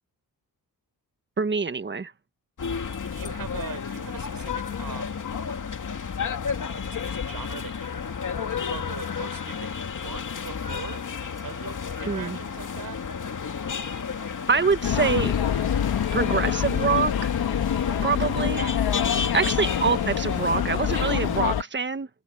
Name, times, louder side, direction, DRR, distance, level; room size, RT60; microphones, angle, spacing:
voice 1, 1.4-2.1 12.0-12.4 14.5-15.3 16.1-17.3 18.0-18.6 19.3-22.1, right 5 dB, 30° right, 1.5 m, -25 dB
sound 1, 2.6-21.4, left 6 dB, 55° left, 2.5 m, -32 dB
voice 2, 3.0-5.3 6.7-8.1 8.6-13.0 18.6-18.8 19.4-19.8, right 7 dB, 70° right, 5.2 m, -41 dB
sound 2, 14.8-21.6, left 9 dB, 80° left, 1.7 m, -26 dB
cardioid pair, 85°, 37 cm